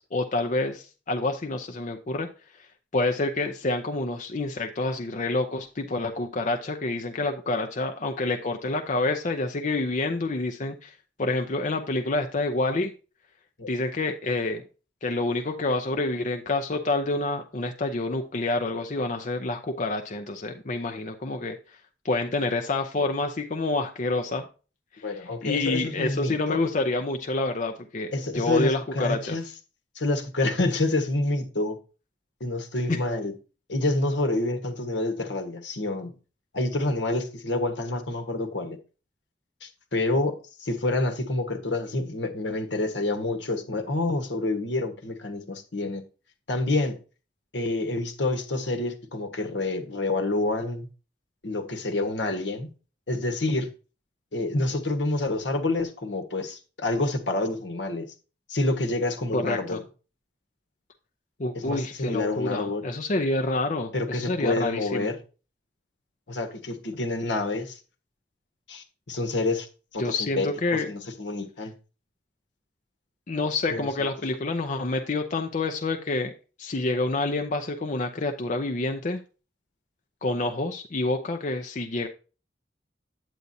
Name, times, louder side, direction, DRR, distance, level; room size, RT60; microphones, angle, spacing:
voice 1, 0.0-2.3 2.9-12.9 13.7-14.6 15.0-21.6 22.0-24.4 25.0-29.4 32.9-33.0 59.3-59.8 61.4-65.1 70.0-70.9 73.3-76.3 76.6-79.2 80.2-82.1, left 2 dB, 45° left, 0.6 m, -28 dB
voice 2, 25.0-26.6 28.1-29.5 29.9-31.8 32.4-33.3 33.7-36.1 36.5-38.8 39.6-46.0 46.5-47.0 47.5-50.9 51.4-52.7 53.1-53.7 54.3-58.1 58.5-59.8 61.5-62.8 63.9-65.2 66.3-67.8 68.7-69.7 69.9-71.7 73.7-73.9, left 2 dB, 80° left, 1.3 m, -28 dB
9.1 x 8.2 x 2.7 m
head